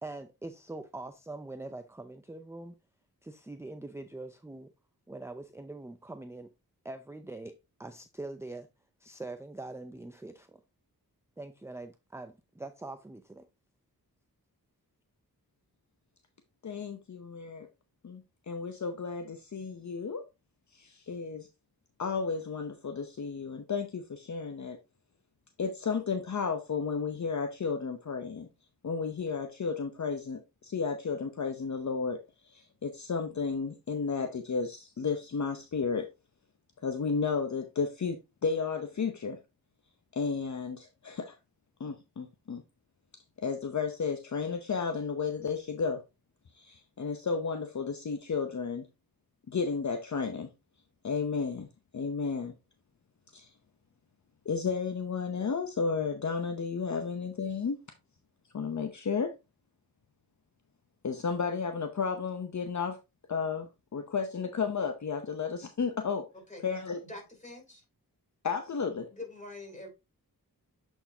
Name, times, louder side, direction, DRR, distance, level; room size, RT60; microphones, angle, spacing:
voice 1, 0.0-2.8 3.2-4.7 5.1-6.5 6.8-7.5 7.8-8.7 9.0-10.6 11.4-13.5, right 2 dB, 10° right, 0.5 m, -43 dB
voice 2, 16.6-17.7 18.0-20.2 20.7-21.5 22.0-24.8 25.6-28.5 28.8-32.2 32.4-36.1 36.8-39.4 40.1-41.4 41.8-42.6 43.4-46.0 46.5-48.9 49.5-50.5 51.0-51.7 51.9-52.5 53.3-53.5 54.5-57.8 58.5-59.3 61.0-63.0 63.3-66.2 66.6-67.0 68.4-69.1, left 5 dB, 50° left, 0.8 m, -33 dB
voice 3, 66.5-67.8 69.1-69.9, left 2 dB, 20° left, 3.3 m, -45 dB
7.7 x 4.5 x 2.7 m
wide cardioid pair, 70°, 36 cm